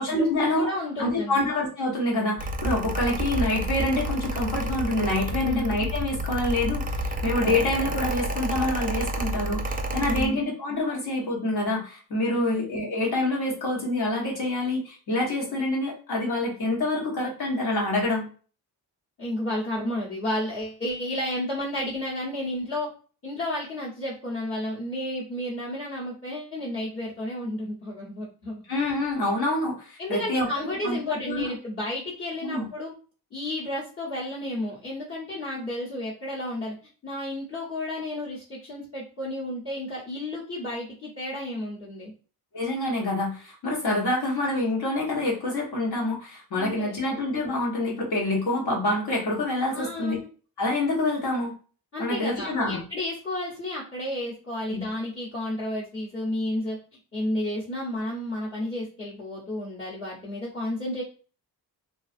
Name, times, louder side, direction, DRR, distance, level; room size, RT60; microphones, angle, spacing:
voice 1, 0.0-0.7 1.0-18.3 28.7-31.5 32.4-32.7 42.5-50.2 50.6-51.5 52.0-52.8 54.7-54.8, left 2 dB, 70° left, -3 dB, 1.2 m, -27 dB
voice 2, 0.5-1.4 5.3-5.7 7.3-7.6 10.1-10.4 12.3-12.6 19.2-22.9 23.2-28.6 30.0-32.9 33.3-36.7 37.0-42.1 46.5-47.1 49.7-50.3 51.9-56.8 57.1-61.0, left 1 dB, 35° left, -8 dB, 1.0 m, -32 dB
Mechanical fan, 2.4-10.3, right 1 dB, 25° right, 0.3 m, -30 dB
2.5 x 2.3 x 2.5 m, 0.38 s
cardioid pair, 90°, 39 cm